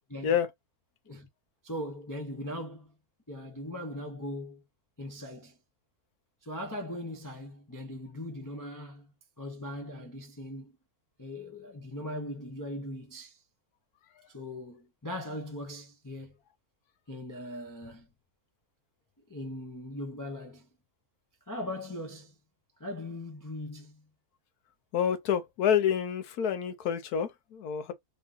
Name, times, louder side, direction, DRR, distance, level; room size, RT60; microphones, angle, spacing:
voice 1, 1.6-3.0 3.3-4.6 5.0-5.6 6.4-9.1 9.4-10.8 11.2-13.4 14.3-16.4 17.1-18.1 19.3-20.7 21.5-22.4 22.8-24.1, left 1 dB, 20° left, 0.5 m, -39 dB
voice 2, 24.9-27.9, left 8 dB, 85° left, 1.3 m, -28 dB
3.6 x 2.5 x 3.8 m
omnidirectional pair, 1.6 m